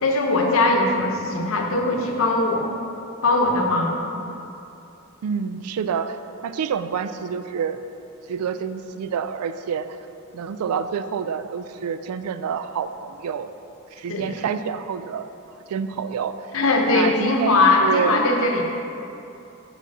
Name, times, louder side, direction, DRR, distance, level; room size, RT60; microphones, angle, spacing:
voice 1, 0.0-2.7 3.2-4.0 14.1-14.3 16.5-18.6, left 2 dB, 65° left, 1 dB, 0.8 m, -20 dB
voice 2, 5.2-7.8 8.3-9.9 10.3-13.5 13.9-15.3 15.7-16.3 16.9-17.5 17.8-18.2, right 7 dB, 90° right, 11 dB, 0.3 m, -28 dB
5.1 x 4.9 x 5.9 m, 2.7 s
head